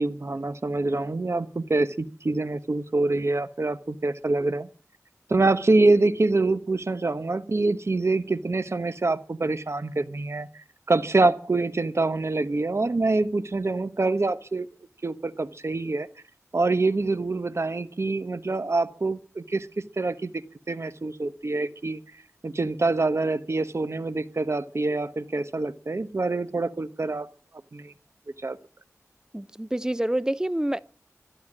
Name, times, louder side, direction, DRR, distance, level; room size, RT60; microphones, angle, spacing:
voice 1, 0.0-4.7 5.3-14.7 15.0-16.1 16.5-19.7 20.0-20.3 20.7-22.0 22.4-27.3 27.7-27.9 28.4-28.6, right 3 dB, 55° right, 1.0 m, -25 dB
voice 2, 29.3-30.8, right 1 dB, 10° right, 0.6 m, -27 dB
12.5 x 11.5 x 7.4 m
wide cardioid pair, 55°, 6 cm